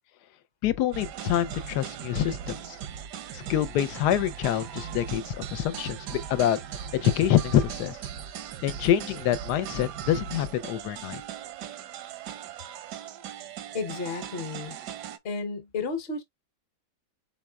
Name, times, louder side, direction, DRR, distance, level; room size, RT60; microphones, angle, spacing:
voice 1, 0.6-2.8 3.3-6.6 6.9-8.0 8.6-11.2, left 11 dB, 80° left, 1.2 m, -26 dB
sound 1, 0.9-15.2, right 9 dB, 85° right, 1.3 m, -39 dB
voice 2, 13.7-14.8 15.2-16.2, left 4 dB, 45° left, 1.0 m, -32 dB
4.5 x 4.2 x 2.2 m
omnidirectional pair, 1.8 m